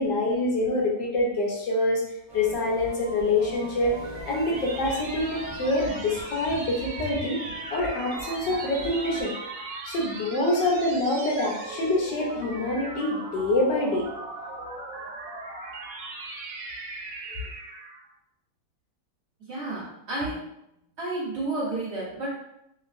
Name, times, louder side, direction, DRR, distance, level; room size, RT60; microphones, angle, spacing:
voice 1, 0.0-2.0 2.3-3.9 4.3-7.4 7.7-9.3 9.8-14.1, left 2 dB, 70° left, -1 dB, 1.2 m, -26 dB
sound 1, 2.3-9.2, right 1 dB, 20° right, 0.9 m, -41 dB
sound 2, 3.4-18.1, right 3 dB, 75° right, 1.2 m, -39 dB
voice 2, 19.4-20.4 21.0-22.3, right 2 dB, 45° right, -7 dB, 0.9 m, -31 dB
3.1 x 2.8 x 2.5 m, 0.83 s
omnidirectional pair, 2.3 m